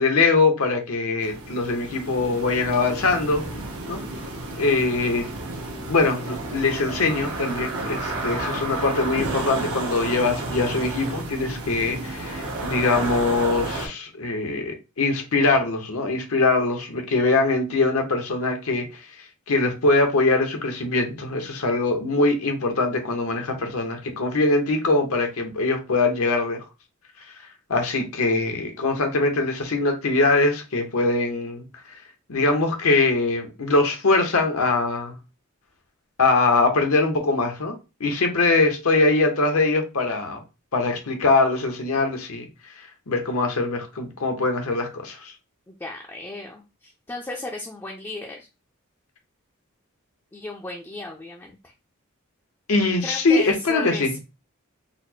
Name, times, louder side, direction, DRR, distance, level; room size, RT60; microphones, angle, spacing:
voice 1, 0.0-3.4 3.9-4.0 4.6-5.2 5.9-18.9 19.5-26.6 27.7-31.6 32.3-35.2 36.2-37.7 38.0-40.4 40.7-42.4 43.1-45.3 52.7-54.1, left 3 dB, 80° left, 0.8 m, -22 dB
sound 1, 1.2-13.9, right 2 dB, 80° right, 0.9 m, -31 dB
voice 2, 45.7-48.5 50.3-51.7 53.0-54.2, left 2 dB, 10° left, 0.4 m, -35 dB
4.0 x 2.1 x 2.7 m
head